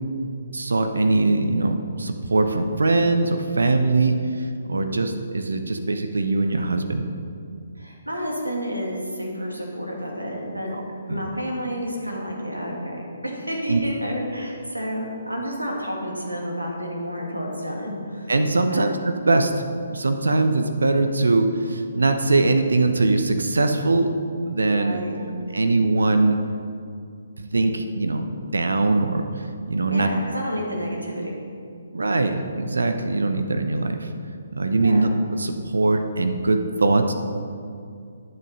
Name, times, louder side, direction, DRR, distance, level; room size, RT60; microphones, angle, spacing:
voice 1, 0.5-7.1 10.7-10.8 11.1-11.2 13.7-13.8 18.3-19.5 19.9-24.1 24.5-25.0 25.5-26.4 27.4-30.1 31.9-34.1 34.5-35.1 35.4-37.1, right 2 dB, 65° right, 6 dB, 0.9 m, -22 dB
voice 2, 7.8-10.8 11.1-18.3 18.6-18.8 24.7-25.3 29.9-31.3 34.8-35.1, equal, 85° right, -1 dB, 2.4 m, -30 dB
11.0 x 7.9 x 5.5 m, 2.4 s
figure-of-eight pair, 135°, 0 cm